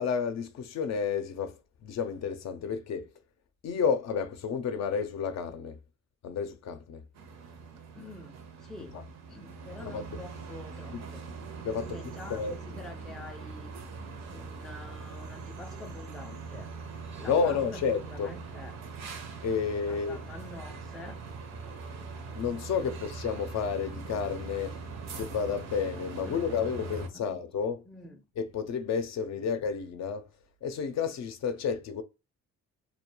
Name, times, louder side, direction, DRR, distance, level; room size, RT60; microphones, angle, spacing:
voice 1, 0.0-1.5 1.8-3.1 3.6-5.8 6.2-7.0 8.8-9.0 9.8-10.0 11.6-12.0 12.3-12.6 17.2-18.3 19.4-20.2 22.4-24.8 25.1-27.8 28.4-30.3 30.6-32.0, left 6 dB, 60° left, 0.5 m, -31 dB
sound 1, 7.2-27.1, right 4 dB, 65° right, 0.6 m, -42 dB
voice 2, 7.9-9.0 9.3-11.3 11.8-13.7 14.3-16.7 17.2-18.8 19.9-21.2 26.2-26.4 27.1-27.4 27.9-28.2, left 2 dB, ahead, 0.3 m, -47 dB
2.2 x 2.2 x 2.9 m
cardioid pair, 90°, 30 cm